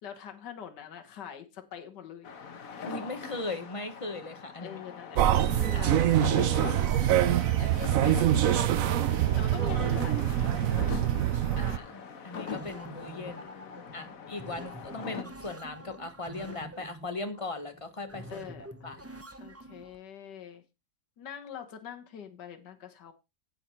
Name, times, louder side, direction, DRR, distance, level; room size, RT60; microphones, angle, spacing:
voice 1, 0.0-2.3 4.6-9.0 9.4-11.6 13.2-13.8 18.3-18.9 19.4-20.6 21.2-23.1, left 8 dB, 75° left, 6 dB, 1.9 m, -45 dB
sound 1, 2.2-15.2, left 6 dB, 55° left, 1.6 m, -42 dB
voice 2, 2.8-4.8 5.7-5.9 11.5-13.4 13.9-18.5 18.8-19.1, left 2 dB, 20° left, 8 dB, 1.2 m, -38 dB
sound 2, 5.1-11.8, right 11 dB, 65° right, 0.9 m, -25 dB
Water in the Cpu, 12.5-20.0, right 1 dB, 15° right, 0.5 m, -47 dB
9.3 x 8.3 x 4.3 m, 0.26 s
omnidirectional pair, 1.9 m